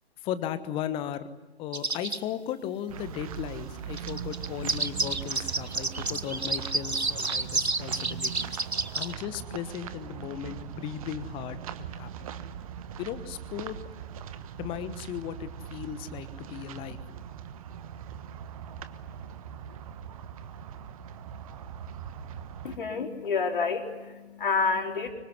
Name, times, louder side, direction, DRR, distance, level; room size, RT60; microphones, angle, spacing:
voice 1, 0.2-1.3 1.6-8.5 8.9-12.3 13.0-13.8 14.6-17.0, left 10 dB, 15° left, 13 dB, 1.2 m, -36 dB
sound 1, 1.7-2.2 4.0-9.1, right 3 dB, 85° right, 1.3 m, -30 dB
sound 2, 2.9-22.8, right 8 dB, 35° right, 1.3 m, -40 dB
voice 2, 22.6-25.1, left 4 dB, 50° left, 2 dB, 4.3 m, -29 dB
25.0 x 23.5 x 10.0 m, 1.2 s
figure-of-eight pair, 125°, 32 cm